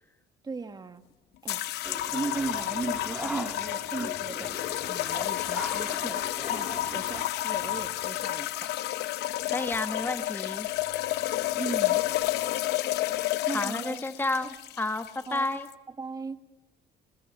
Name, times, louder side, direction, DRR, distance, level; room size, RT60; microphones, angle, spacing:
voice 1, 0.4-1.0 1.4-1.6 2.1-8.8 11.5-12.0 13.5-14.0 14.4-14.5 15.3-15.5 16.0-16.4, right 4 dB, 25° right, 8 dB, 1.6 m, -37 dB
sound 1, 1.5-15.7, left 15 dB, 80° left, 0.7 m, -30 dB
sound 2, 1.8-7.3, right 1 dB, 5° right, 1.4 m, -41 dB
voice 2, 9.5-10.7 13.5-15.7, left 2 dB, 10° left, 9 dB, 1.3 m, -31 dB
22.0 x 19.0 x 9.1 m, 1.0 s
cardioid pair, 110°, 17 cm